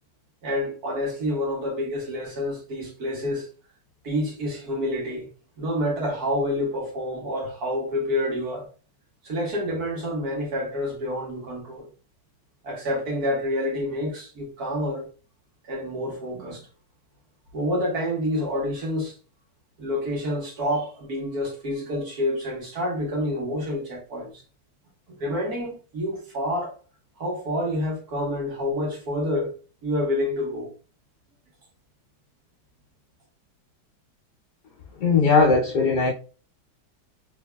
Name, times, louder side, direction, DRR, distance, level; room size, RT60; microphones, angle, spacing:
voice 1, 0.4-3.5 4.0-5.3 5.6-8.7 9.2-11.9 12.6-15.1 15.6-16.7 17.5-19.2 19.8-24.4 25.1-26.7 27.2-29.5 29.8-30.7, left 1 dB, 60° right, 1.7 m, -28 dB
voice 2, 35.0-36.1, left 4 dB, 70° left, 1.4 m, -19 dB
3.7 x 3.3 x 2.2 m
omnidirectional pair, 1.9 m